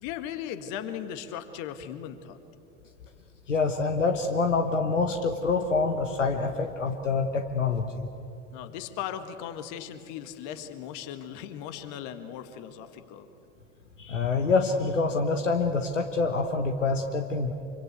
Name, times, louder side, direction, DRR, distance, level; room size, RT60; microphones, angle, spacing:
voice 1, 0.0-2.4 8.5-13.3, left 9 dB, 55° left, 10 dB, 1.8 m, -38 dB
voice 2, 3.5-8.1 14.0-17.5, left 4 dB, 85° left, 5 dB, 1.4 m, -26 dB
25.5 x 25.0 x 8.1 m, 2.9 s
figure-of-eight pair, 70°, 36 cm